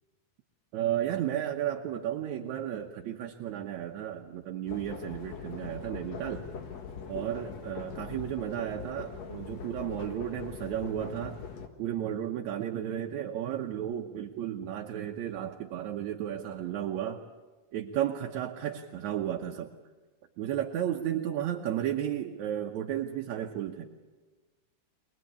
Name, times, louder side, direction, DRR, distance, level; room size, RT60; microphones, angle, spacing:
voice 1, 0.7-6.5 7.1-11.4 11.8-17.2 17.7-19.7 20.4-23.9, right 11 dB, 75° right, 3 dB, 2.3 m, -33 dB
sound 1, 4.7-11.7, left 6 dB, 60° left, 2.8 m, -42 dB
24.0 x 20.5 x 8.5 m, 1.3 s
omnidirectional pair, 3.5 m